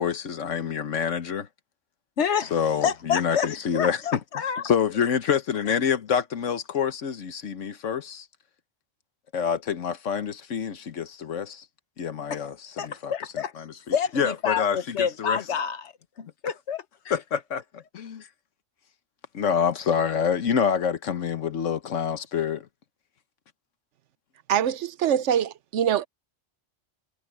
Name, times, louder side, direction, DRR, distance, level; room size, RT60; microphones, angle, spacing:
voice 1, 0.0-1.5 2.5-4.2 4.6-8.3 9.3-11.6 12.0-13.1 13.6-15.4 17.1-18.3 19.3-22.7, left 7 dB, 85° left, 1.5 m, -27 dB
voice 2, 2.2-2.5 2.8-3.5 3.7-4.6 12.3-12.5 12.8-13.5 13.9-17.1, left 7 dB, 70° left, 1.4 m, -28 dB
voice 3, 24.5-26.1, right 9 dB, 75° right, 1.0 m, -24 dB
omnidirectional pair, 1.2 m